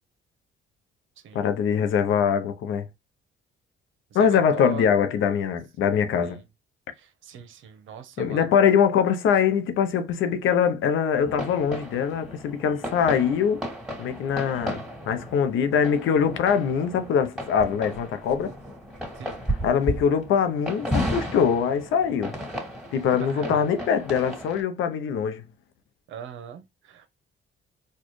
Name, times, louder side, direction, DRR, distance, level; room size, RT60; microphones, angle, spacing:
voice 1, 1.3-2.9 4.1-6.4 8.2-13.6 14.0-18.6 19.6-22.4 22.9-25.5, left 7 dB, 80° left, 0.7 m, -23 dB
voice 2, 4.1-5.0 6.2-6.4 6.9-8.6 19.1-19.4 23.1-23.7 26.1-27.1, right 8 dB, 75° right, 0.8 m, -41 dB
sound 1, 11.2-24.6, equal, 5° right, 1.9 m, -34 dB
4.3 x 2.3 x 3.1 m
cardioid pair, 90°, 20 cm